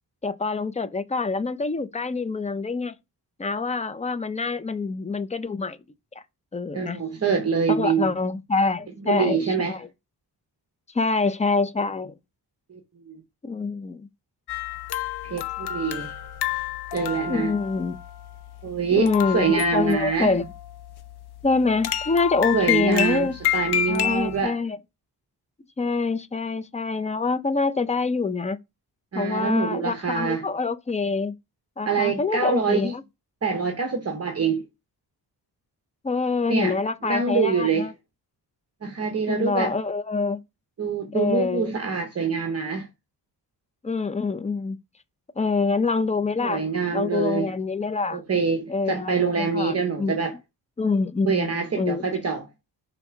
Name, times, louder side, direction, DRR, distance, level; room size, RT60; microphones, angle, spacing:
voice 1, 0.2-2.9 3.4-5.8 6.5-7.0 7.7-9.9 10.9-12.1 13.4-14.1 17.3-18.0 19.0-20.5 21.4-23.4 23.9-24.8 25.8-28.6 29.1-31.3 31.8-33.0 36.0-37.9 39.3-40.4 41.1-41.7 43.8-44.8 45.4-46.6 46.9-48.2 48.7-50.1 50.8-52.0, left 4 dB, 20° left, 0.4 m, -25 dB
voice 2, 6.7-8.1 9.0-9.8 12.7-12.8 13.1-13.2 15.2-16.1 16.9-17.5 18.6-20.3 22.5-24.6 29.1-30.4 31.8-32.9 33.4-34.6 36.5-36.8 37.0-37.9 38.8-39.8 40.8-42.9 46.4-47.5 48.1-50.4 51.3-52.5, right 5 dB, 40° right, 1.0 m, -25 dB
sound 1, 14.5-24.4, left 11 dB, 75° left, 0.7 m, -30 dB
5.5 x 3.5 x 5.8 m
wide cardioid pair, 165°, 39 cm